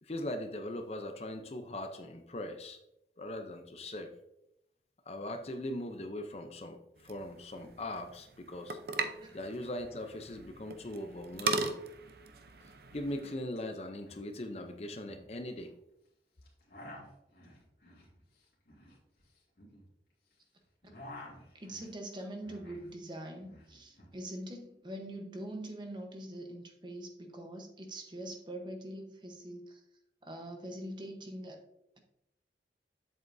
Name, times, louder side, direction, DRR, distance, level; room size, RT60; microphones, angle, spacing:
voice 1, 0.0-2.8 3.2-4.1 5.1-8.8 9.3-11.7 12.9-15.7, left 1 dB, 35° left, 6 dB, 0.6 m, -40 dB
sound 1, 7.0-13.4, right 3 dB, 60° right, 0.6 m, -39 dB
sound 2, 13.5-13.6 13.9-14.2 14.5-15.7 16.4-20.4 20.7-22.9 23.2-24.1, left 1 dB, 65° left, 2.4 m, -52 dB
voice 2, 21.5-29.8 30.2-31.6, right 1 dB, 25° right, 3 dB, 1.0 m, -43 dB
7.8 x 7.5 x 2.7 m, 0.84 s
head